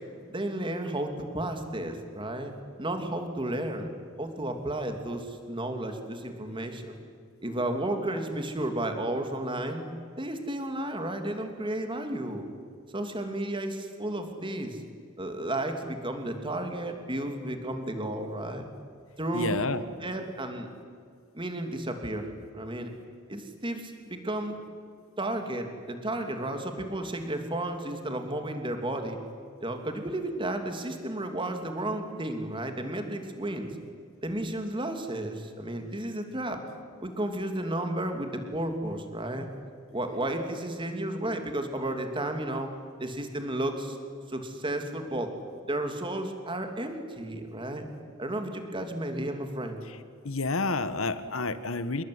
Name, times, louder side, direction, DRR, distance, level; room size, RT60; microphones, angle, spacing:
voice 1, 0.3-2.5 2.8-3.9 4.2-7.0 7.4-9.8 10.2-12.4 12.9-14.8 15.2-18.7 19.2-19.6 20.0-20.7 21.3-22.9 23.3-24.6 25.2-29.2 29.6-33.7 34.2-36.6 37.0-39.5 39.9-42.7 43.0-44.0 44.3-45.3 45.6-47.8 48.2-49.8, right 1 dB, 25° right, 6 dB, 3.1 m, -33 dB
voice 2, 19.3-19.8 50.3-52.0, left 3 dB, 80° left, 12 dB, 1.6 m, -29 dB
27.0 x 21.5 x 9.8 m, 2.1 s
head